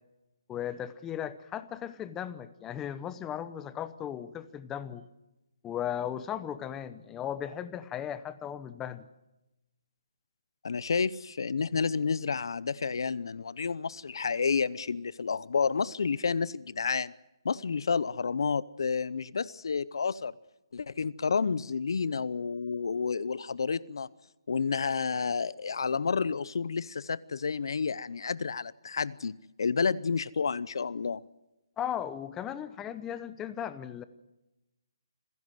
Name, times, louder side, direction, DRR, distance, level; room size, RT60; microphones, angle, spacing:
voice 1, 0.5-5.0 5.6-9.1 31.8-34.0, left 9 dB, 10° left, 14 dB, 0.8 m, -36 dB
voice 2, 10.6-17.1 17.4-20.3 20.7-24.1 24.5-31.2, left 5 dB, 65° left, 20 dB, 0.7 m, -30 dB
26.5 x 16.5 x 7.8 m, 0.96 s
hypercardioid pair, 160°, 3 cm